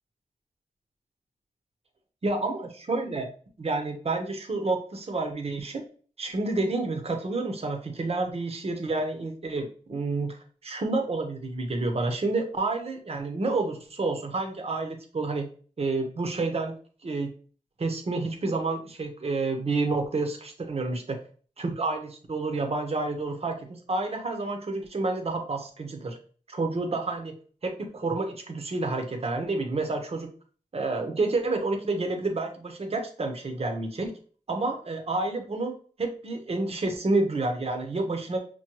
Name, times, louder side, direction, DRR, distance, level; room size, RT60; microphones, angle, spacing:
voice 1, 2.2-3.3 3.6-5.8 6.2-15.5 15.8-16.8 17.0-17.3 17.8-21.2 21.6-26.2 26.5-27.4 27.6-30.3 30.7-34.1 34.5-38.4, right 3 dB, 50° right, 5 dB, 0.8 m, -29 dB
6.0 x 2.1 x 2.9 m, 0.41 s
cardioid pair, 55°, 13 cm